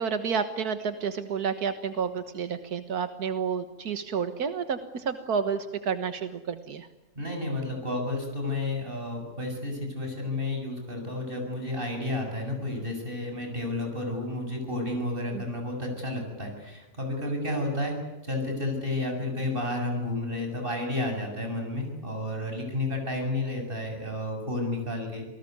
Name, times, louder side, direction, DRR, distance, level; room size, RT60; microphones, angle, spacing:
voice 1, 0.0-6.9 15.3-15.4, right 6 dB, 85° right, 9 dB, 1.9 m, -30 dB
voice 2, 7.2-18.0 18.2-25.3, left 2 dB, 35° right, 3 dB, 7.8 m, -31 dB
27.5 x 19.5 x 9.5 m, 1.0 s
omnidirectional pair, 1.6 m